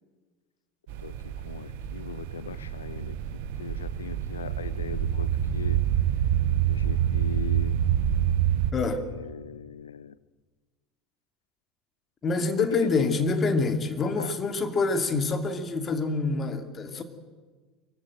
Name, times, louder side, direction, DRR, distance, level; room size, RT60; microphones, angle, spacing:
sound 1, 0.9-8.7, right 10 dB, 65° right, 1.4 m, -27 dB
voice 1, 1.0-3.1 3.6-5.8 6.7-7.8 8.7-10.1 12.6-13.1 14.2-14.4, left 7 dB, 80° left, 0.6 m, -39 dB
voice 2, 8.7-9.0 12.2-17.0, left 3 dB, 30° left, 2.8 m, -26 dB
24.0 x 15.5 x 9.2 m
figure-of-eight pair, 70°, 0 cm